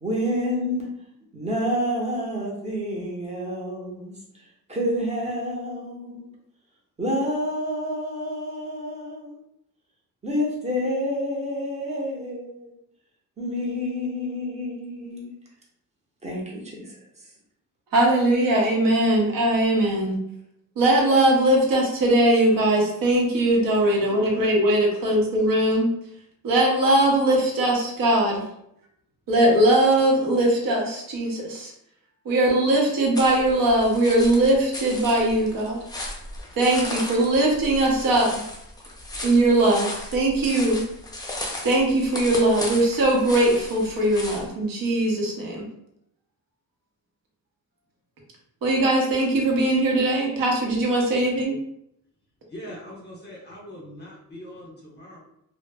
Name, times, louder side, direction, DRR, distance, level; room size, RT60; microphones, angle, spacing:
voice 1, 0.0-0.9 1.3-4.2 4.7-6.3 7.0-9.4 10.2-12.7 13.4-15.3 16.2-17.0, equal, 20° right, -3 dB, 0.6 m, -28 dB
voice 2, 17.9-20.2 20.8-25.9 26.4-28.5 29.3-31.7 32.3-35.8 36.6-38.3 39.2-40.8 41.6-45.6 48.6-51.6, right 1 dB, 75° right, -1 dB, 0.8 m, -20 dB
voice 3, 23.9-24.4 24.9-25.2 51.1-51.3 52.5-55.2, equal, 30° left, -3 dB, 0.7 m, -42 dB
sound 1, 33.1-44.5, left 1 dB, 10° left, 0.3 m, -36 dB
2.0 x 2.0 x 3.3 m, 0.75 s
wide cardioid pair, 145°, 34 cm